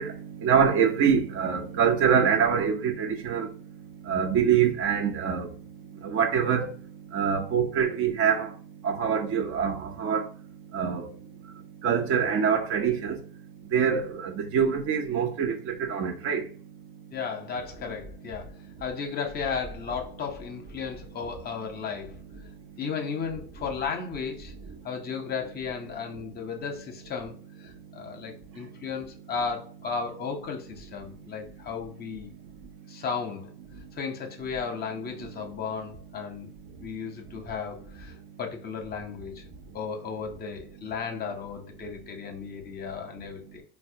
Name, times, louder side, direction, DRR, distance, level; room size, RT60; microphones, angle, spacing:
voice 1, 0.0-17.1 22.7-22.8 27.9-28.8 35.2-35.3 36.8-36.9, right 7 dB, 45° right, 0.7 m, -26 dB
voice 2, 17.1-22.2 22.8-24.5 24.8-32.3 32.9-33.5 34.0-36.5 36.8-38.1 38.4-39.4 39.7-43.6, left 6 dB, 30° left, 0.7 m, -34 dB
4.0 x 2.1 x 2.7 m
hypercardioid pair, 85°, 30 cm